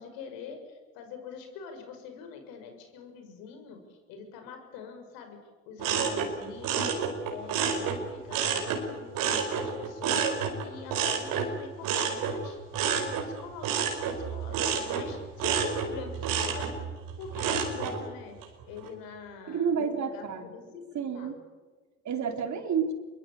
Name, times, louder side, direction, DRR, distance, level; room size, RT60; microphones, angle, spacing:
voice 1, 0.0-5.4 5.7-7.0 7.3-10.3 10.6-12.6 12.9-16.7 17.2-18.4 18.7-21.3, left 6 dB, 75° left, 5 dB, 6.2 m, -44 dB
sound 1, 5.8-8.8 9.1-18.0 18.4-18.9, right 7 dB, 70° right, 4.8 m, -30 dB
voice 2, 19.5-20.5 20.9-21.4 22.0-22.9, right 6 dB, 55° right, 6 dB, 4.0 m, -30 dB
26.0 x 22.5 x 8.6 m, 1.3 s
hypercardioid pair, 55°, 35 cm